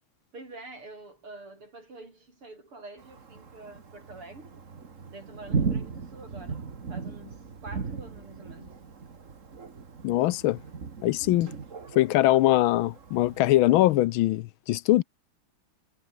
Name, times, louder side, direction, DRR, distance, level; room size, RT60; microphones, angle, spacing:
voice 1, 0.3-4.6 5.1-6.6 6.9-8.8 15.0-15.1, right 2 dB, 85° right, 8.7 m, -46 dB
Thunder, 3.0-13.9, right 5 dB, 35° right, 2.1 m, -37 dB
voice 2, 10.0-10.6 11.0-11.5 12.0-15.0, left 16 dB, 75° left, 1.4 m, -22 dB
omnidirectional pair, 2.4 m